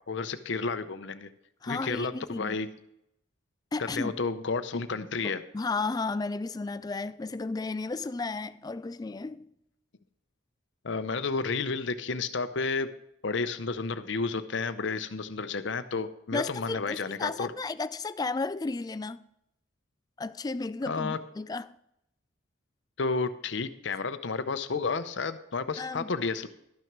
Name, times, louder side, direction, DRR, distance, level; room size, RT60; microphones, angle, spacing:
voice 1, 0.1-1.3 1.7-2.7 3.8-5.4 10.8-12.9 13.2-17.5 20.9-21.2 23.0-26.5, left 4 dB, 60° left, 0.6 m, -31 dB
voice 2, 1.6-2.6 3.7-4.2 5.2-9.5 16.3-19.2 20.2-21.8 25.8-26.1, left 3 dB, 20° left, 0.3 m, -33 dB
12.5 x 6.2 x 5.9 m
head